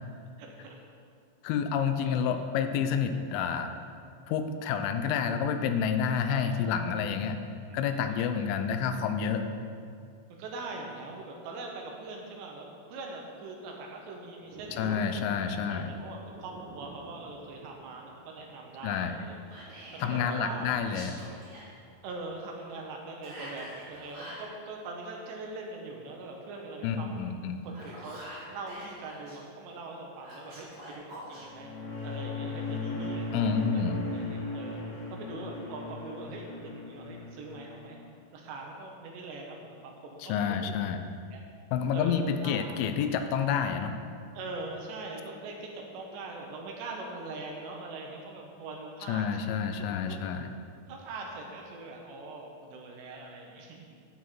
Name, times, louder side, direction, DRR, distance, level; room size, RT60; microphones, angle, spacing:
voice 1, 0.4-0.8 2.0-2.2 6.3-6.8 7.7-8.3 10.3-19.4 20.0-20.7 22.0-27.4 27.6-28.2 28.5-31.7 32.0-33.8 34.1-34.8 35.1-38.0 38.3-40.7 41.3-41.4 41.9-42.7 44.3-49.2 49.8-50.2 50.9-53.8, right 3 dB, 75° right, 0 dB, 3.0 m, -42 dB
voice 2, 1.4-3.7 4.3-7.4 7.7-9.5 14.8-15.9 18.8-19.2 20.0-21.2 26.8-27.7 33.3-34.0 40.2-41.0 41.7-44.0 49.1-50.5, left 7 dB, 85° left, 8 dB, 3.1 m, -29 dB
sound 1, 8.4-8.7 9.6-9.7 10.1-10.9 11.3-11.4 11.7-11.8 12.1-12.5 14.2-22.8, right 4 dB, 90° right, 3.5 m, -51 dB
Whispering, 19.5-20.2 20.8-21.7 23.2-24.5 27.5-29.4 30.2-31.4, right 1 dB, 35° right, 3.6 m, -46 dB
sound 2, 31.3-38.0, left 2 dB, 60° left, 2.5 m, -37 dB
11.0 x 8.5 x 4.4 m, 2.3 s
omnidirectional pair, 5.5 m